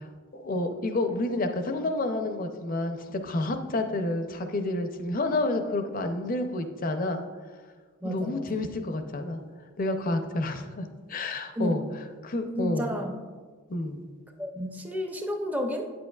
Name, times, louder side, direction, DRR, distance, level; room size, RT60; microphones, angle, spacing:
voice 1, 0.3-7.2 8.0-9.4 9.8-11.8 12.2-12.9 13.7-14.0, left 2 dB, 40° left, 7 dB, 0.6 m, -29 dB
voice 2, 8.0-8.6 11.6-12.0 12.5-13.2 14.4-15.9, left 1 dB, 10° right, 3 dB, 0.6 m, -31 dB
8.8 x 7.8 x 2.3 m, 1.5 s
head